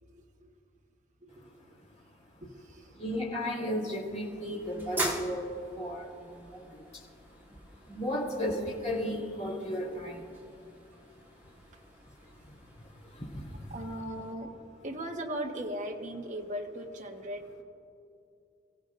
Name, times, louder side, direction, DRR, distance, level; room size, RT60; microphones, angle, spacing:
voice 1, 0.0-0.5 1.2-1.6 2.4-2.9 13.7-14.5 14.8-17.6, right 1 dB, 45° right, 1 dB, 1.3 m, -38 dB
voice 2, 2.9-13.8, equal, 40° left, -3 dB, 4.2 m, -36 dB
sound 1, 3.5-14.3, right 1 dB, 10° right, 1.9 m, -43 dB
28.5 x 16.0 x 2.6 m, 2.6 s
head